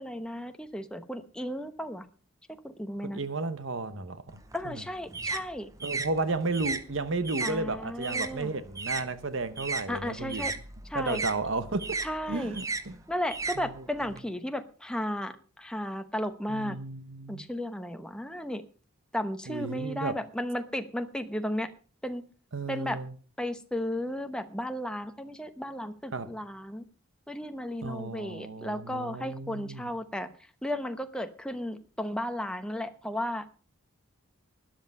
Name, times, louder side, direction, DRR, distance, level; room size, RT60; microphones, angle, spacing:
voice 1, 0.0-2.0 2.6-3.2 4.5-5.7 7.4-8.5 9.9-10.5 10.9-11.2 12.0-12.6 13.1-16.8 17.3-18.6 19.1-21.7 22.0-22.2 22.7-23.0 23.4-26.8 27.3-30.3 30.6-33.5, left 1 dB, 5° left, 0.9 m, -34 dB
voice 2, 3.0-4.8 5.8-10.4 10.9-13.0 13.6-13.7 16.5-17.5 19.5-20.2 22.5-23.1 26.1-26.4 27.8-29.9, right 3 dB, 65° right, 0.9 m, -33 dB
sound 1, 4.3-9.1 9.4-14.2, right 4 dB, 15° right, 0.7 m, -35 dB
13.0 x 10.0 x 5.4 m
head